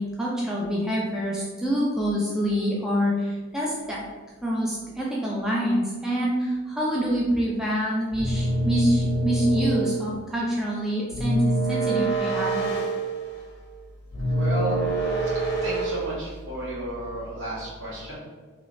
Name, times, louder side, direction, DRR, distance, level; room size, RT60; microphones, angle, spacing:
voice 1, 0.0-4.1 4.4-12.6, equal, 5° right, -5 dB, 0.3 m, -26 dB
sound 1, 8.1-10.1 11.1-13.5 14.1-16.1, right 2 dB, 55° left, 0.7 m, -26 dB
voice 2, 14.3-14.8 15.6-18.1, equal, 65° right, -8 dB, 1.4 m, -32 dB
3.1 x 2.6 x 3.0 m, 1.3 s
head